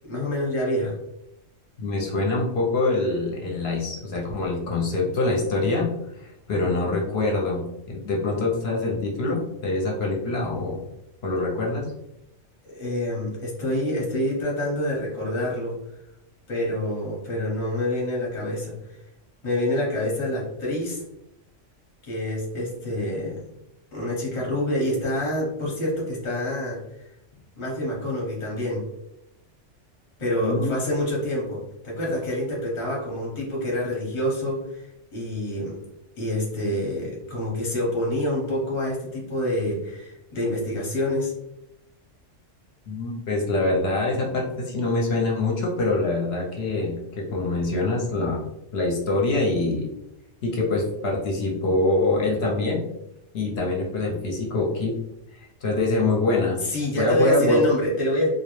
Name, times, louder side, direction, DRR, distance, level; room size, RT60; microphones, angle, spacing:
voice 1, 0.1-1.0 12.6-15.8 16.5-18.9 19.4-21.0 22.0-23.4 23.9-26.8 27.6-28.8 30.2-34.8 35.1-35.8 36.2-41.3 56.6-58.3, left 1 dB, 30° left, -3 dB, 0.7 m, -27 dB
voice 2, 1.8-5.9 6.2-7.6 7.9-10.8 11.2-11.9 30.4-30.7 42.9-48.4 48.7-49.9 50.4-52.8 53.3-54.9 55.6-56.6 56.9-57.6, left 2 dB, 65° left, -2 dB, 0.7 m, -24 dB
2.3 x 2.0 x 2.9 m, 0.83 s
omnidirectional pair, 1.3 m